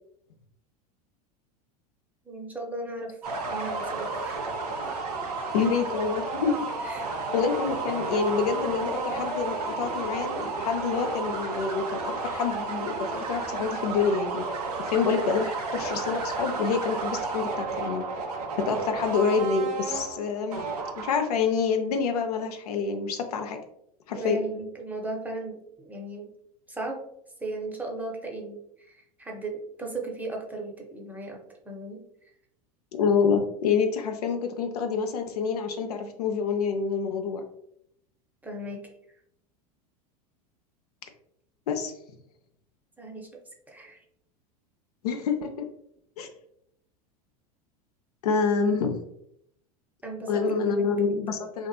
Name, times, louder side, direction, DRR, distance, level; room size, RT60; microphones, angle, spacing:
voice 1, 2.3-3.2 3.5-4.4 6.8-7.1 24.2-26.3 26.7-27.0 27.4-32.0 38.4-38.9 43.0-43.3 43.7-44.0 50.0-51.4, right 2 dB, 10° right, 0 dB, 0.5 m, -36 dB
sound 1, 3.2-21.4, right 3 dB, 90° right, 0.5 m, -32 dB
voice 2, 5.5-6.7 7.3-14.4 14.8-18.0 18.6-20.6 21.0-23.6 24.1-24.4 33.0-37.4 41.7-41.9 45.0-45.7 46.2-46.3 48.2-49.0 50.3-51.7, left 5 dB, 80° left, 6 dB, 0.4 m, -27 dB
2.7 x 2.4 x 2.2 m, 0.73 s
hypercardioid pair, 95°, 20 cm